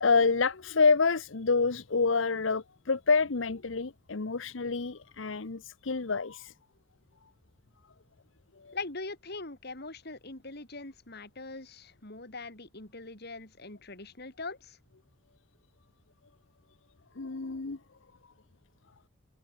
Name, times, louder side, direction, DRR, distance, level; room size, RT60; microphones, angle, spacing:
voice 1, 0.0-6.5 8.6-8.8 17.2-17.8, left 4 dB, 80° left, 0.9 m, -27 dB
voice 2, 8.7-14.8, left 3 dB, 55° left, 3.9 m, -42 dB
open air
head